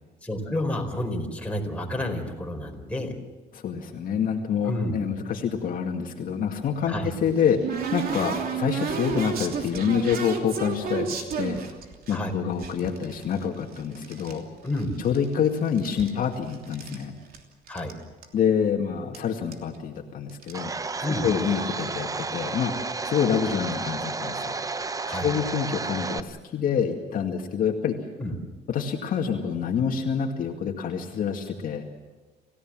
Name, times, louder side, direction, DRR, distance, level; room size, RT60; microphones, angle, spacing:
voice 1, 0.2-3.1 4.6-4.9 6.9-7.1 12.1-12.3 14.6-15.0 17.7-17.9 21.0-21.3 25.0-25.3 28.2-28.4, left 1 dB, 10° left, 1 dB, 4.4 m, -30 dB
voice 2, 3.5-7.6 7.9-11.6 12.1-14.4 15.0-17.2 18.3-20.7 21.1-24.5 25.1-28.0 28.7-31.9, left 7 dB, 55° left, 2 dB, 2.2 m, -27 dB
sound 1, 6.9-12.2 12.6-14.4 14.7-15.4 15.7-17.0 17.3-17.4 17.7-17.9 18.2-18.3 19.1-19.2 19.5-19.8 20.3-20.6, right 6 dB, 60° right, 3.1 m, -32 dB
Domestic sounds home sounds, 20.5-26.2, right 4 dB, 20° right, 0.8 m, -32 dB
28.0 x 16.0 x 7.6 m, 1.3 s
cardioid pair, 110°, 17 cm